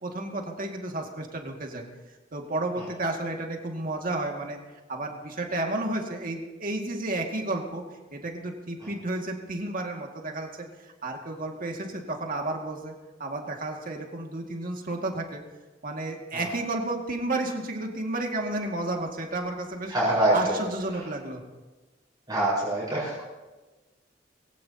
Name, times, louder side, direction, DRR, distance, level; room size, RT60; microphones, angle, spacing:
voice 1, 0.0-1.8 2.3-4.6 4.9-7.8 8.1-12.9 13.2-15.4 15.8-19.9 20.3-21.4, right 2 dB, 50° right, 1 dB, 2.1 m, -32 dB
voice 2, 19.9-20.6 20.9-21.1 22.3-23.2, right 1 dB, 20° right, -7 dB, 4.9 m, -25 dB
22.0 x 17.0 x 2.9 m, 1.2 s
head